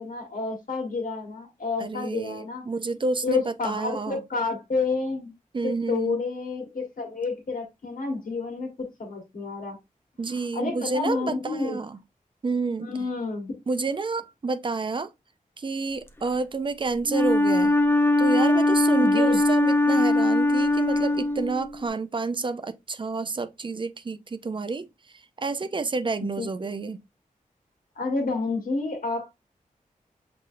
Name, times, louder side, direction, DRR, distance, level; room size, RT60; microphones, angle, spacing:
voice 1, 0.0-2.6 3.2-5.3 5.6-9.8 10.3-11.8 12.8-13.5 19.0-19.4 19.9-20.0 26.2-26.7 27.9-29.3, left 3 dB, 75° left, 1.4 m, -30 dB
voice 2, 1.8-4.2 5.5-6.2 10.2-12.0 12.4-12.9 13.7-15.1 15.6-17.8 18.2-24.9 25.1-27.0, right 4 dB, 35° right, 0.4 m, -29 dB
Wind instrument woodwind instrument, 17.1-21.8, left 2 dB, 15° left, 0.5 m, -21 dB
6.5 x 2.6 x 2.5 m
wide cardioid pair, 105°, 14 cm